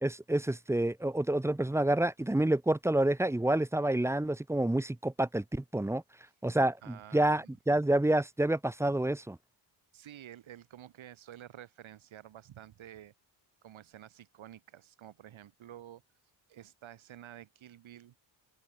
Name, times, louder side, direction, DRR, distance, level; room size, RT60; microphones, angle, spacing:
voice 1, 0.0-6.0 6.4-9.4, right 1 dB, 5° right, 0.7 m, -28 dB
voice 2, 6.8-7.4 9.9-13.1 13.6-18.1, right 11 dB, 70° right, 3.8 m, -51 dB
supercardioid pair, 65°, 49 cm